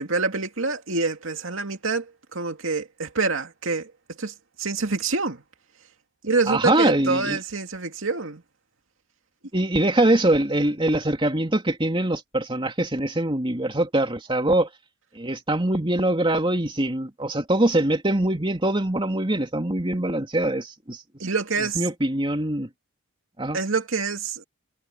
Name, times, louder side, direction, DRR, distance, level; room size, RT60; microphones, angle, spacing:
voice 1, 0.0-3.9 4.2-5.4 6.2-8.4 21.2-21.9 23.5-24.4, right 4 dB, 70° right, 2.6 m, -26 dB
voice 2, 6.5-7.4 9.5-14.7 15.1-21.0 21.8-22.7 23.4-23.6, right 1 dB, 25° right, 2.6 m, -23 dB
head